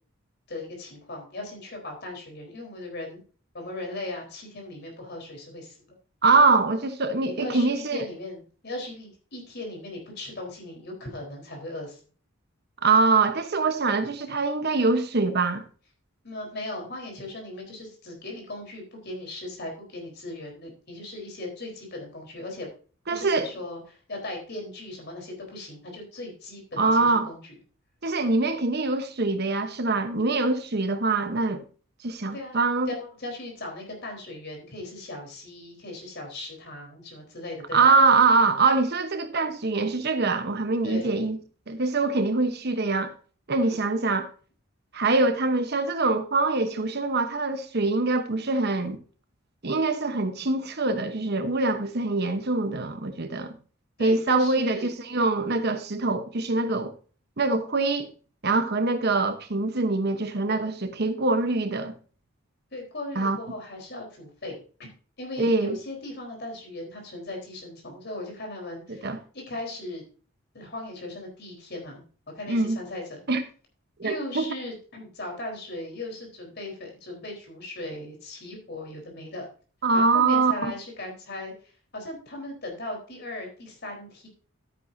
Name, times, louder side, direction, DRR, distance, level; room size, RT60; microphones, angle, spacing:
voice 1, 0.5-3.2 3.5-6.0 7.2-12.0 16.2-22.7 23.1-27.4 32.3-32.6 32.9-37.9 40.8-41.3 43.6-43.8 54.0-54.9 62.7-64.9 65.2-70.0 70.5-72.0 72.3-73.2 74.0-79.5 79.9-84.3, left 2 dB, 50° left, 4.1 m, -38 dB
voice 2, 6.2-8.0 12.8-15.6 23.1-23.5 26.8-27.3 28.0-31.6 32.0-32.9 37.7-41.4 41.7-43.1 43.5-44.3 44.9-49.0 49.6-53.5 54.0-56.9 57.4-58.1 58.4-61.9 63.2-63.4 65.4-65.8 68.9-69.2 72.5-72.8 73.3-73.4 74.0-74.5 79.8-80.5, right 3 dB, 50° right, 1.0 m, -24 dB
12.5 x 9.4 x 2.7 m
head